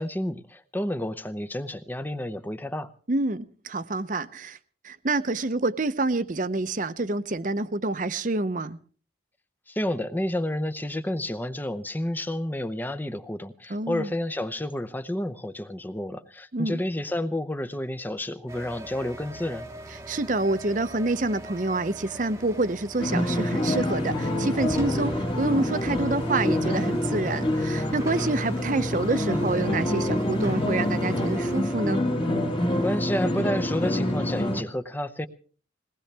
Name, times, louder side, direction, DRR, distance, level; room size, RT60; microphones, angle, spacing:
voice 1, 0.0-2.9 9.7-19.7 32.8-35.3, left 1 dB, 10° left, 0.7 m, -30 dB
voice 2, 3.1-4.6 4.8-8.8 13.7-14.1 16.5-16.8 20.1-32.0, right 2 dB, 40° right, 0.7 m, -27 dB
sound 1, 18.5-31.6, right 1 dB, 15° right, 1.0 m, -42 dB
sound 2, 23.0-34.6, left 1 dB, 25° left, 1.6 m, -26 dB
21.5 x 18.5 x 3.4 m
head